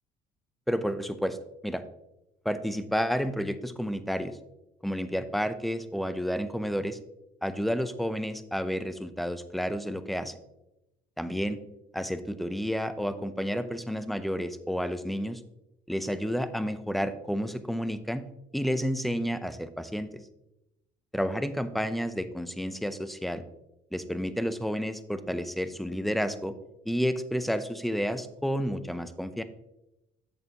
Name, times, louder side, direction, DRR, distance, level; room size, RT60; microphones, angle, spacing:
voice 1, 0.7-1.4 1.6-1.8 2.4-4.4 4.8-7.0 7.4-10.3 11.2-11.6 11.9-15.4 15.9-18.2 18.5-20.1 21.1-23.4 23.9-26.5 26.9-29.4, equal, ahead, 11 dB, 0.5 m, -30 dB
8.3 x 7.3 x 2.8 m, 0.91 s
cardioid pair, 110°, 17 cm